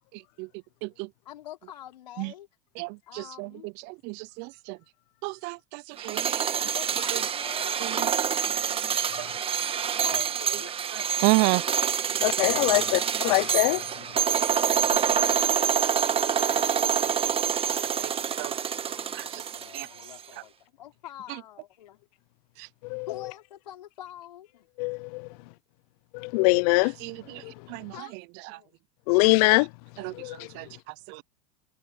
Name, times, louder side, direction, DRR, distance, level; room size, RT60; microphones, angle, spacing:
voice 1, 0.9-2.5 3.1-3.7 6.6-8.3 10.0-10.8 13.7-22.0 23.1-24.7 25.3-25.5 26.2-26.6 27.9-28.2 28.5-28.7, left 12 dB, 90° left, 4.3 m, -46 dB
voice 2, 2.8-4.8 5.2-6.6 7.1-7.2 7.8-8.1 9.2-9.3 10.9-11.6 18.0-18.1 18.4-18.5 19.1-19.4 19.7-19.9 22.6-22.7 27.0-27.4 27.7-27.9 30.0-30.7 31.1-31.2, right 29 dB, 55° right, 0.6 m, -31 dB
sound 1, 6.0-20.1, right 8 dB, 25° right, 1.4 m, -26 dB
voice 3, 12.2-12.8 13.2-13.8 22.9-23.1 24.8-25.3 26.1-26.9 27.4-27.5 29.1-29.7 30.2-30.5, left 27 dB, 65° left, 0.5 m, -22 dB
hypercardioid pair, 105°, 21 cm